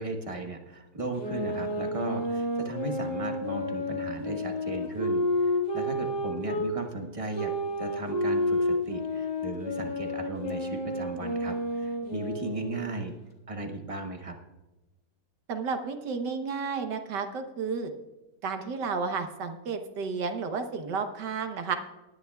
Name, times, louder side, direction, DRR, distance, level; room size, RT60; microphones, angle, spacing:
voice 1, 0.0-7.5 7.8-13.1 13.5-14.4, right 2 dB, 20° right, 3 dB, 1.1 m, -36 dB
sound 1, 1.2-6.7 7.3-12.9, left 1 dB, 25° left, 1.7 m, -30 dB
voice 2, 15.5-17.9 18.4-21.8, right 5 dB, 75° right, 6 dB, 1.6 m, -32 dB
19.5 x 10.5 x 2.3 m, 1.1 s
omnidirectional pair, 1.9 m